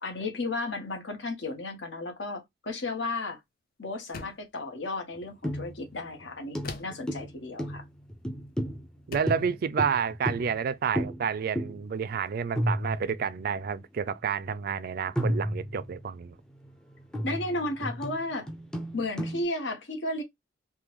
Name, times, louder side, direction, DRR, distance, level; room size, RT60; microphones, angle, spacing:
voice 1, 0.0-3.4 3.8-7.8 17.2-18.5 18.9-20.2, left 2 dB, 65° left, 1.1 m, -34 dB
Hand body impact on tile porcelain bathroom sink, 4.1-4.6 6.6-7.1 8.4-8.6 9.1-9.5, left 4 dB, 50° left, 0.6 m, -41 dB
sound 1, 5.4-5.9 6.2-6.3 6.5-10.6 11.0-11.3 11.6-11.8 12.1-12.2 12.6-13.4 14.2-14.3 15.1-16.1 16.5-19.4, equal, 5° left, 0.5 m, -32 dB
voice 2, 9.1-16.4, right 6 dB, 50° right, 0.3 m, -30 dB
3.5 x 2.2 x 3.0 m
head